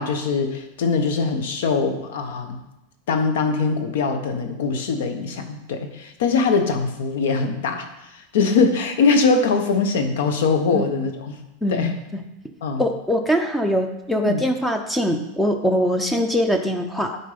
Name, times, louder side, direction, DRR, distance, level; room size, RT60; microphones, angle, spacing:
voice 1, 0.0-2.6 3.1-11.4 11.7-11.9 12.6-12.8 14.2-14.4, left 4 dB, 75° left, 6 dB, 1.3 m, -22 dB
voice 2, 11.6-12.2 12.8-17.2, equal, 5° left, 5 dB, 0.5 m, -22 dB
11.0 x 4.4 x 5.2 m, 0.91 s
supercardioid pair, 170°, 0 cm